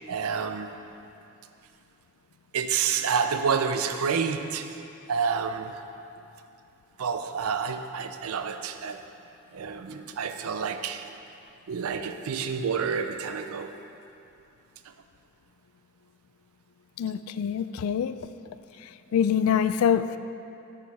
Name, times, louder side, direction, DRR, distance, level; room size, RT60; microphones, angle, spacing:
voice 1, 0.1-0.8 2.5-4.8 5.1-5.8 7.0-9.1 9.5-11.1 11.7-13.8, right 6 dB, 85° right, 8 dB, 0.5 m, -29 dB
voice 2, 17.0-18.1 19.1-20.2, left 8 dB, 75° left, 12 dB, 0.3 m, -24 dB
8.6 x 4.7 x 5.4 m, 2.7 s
head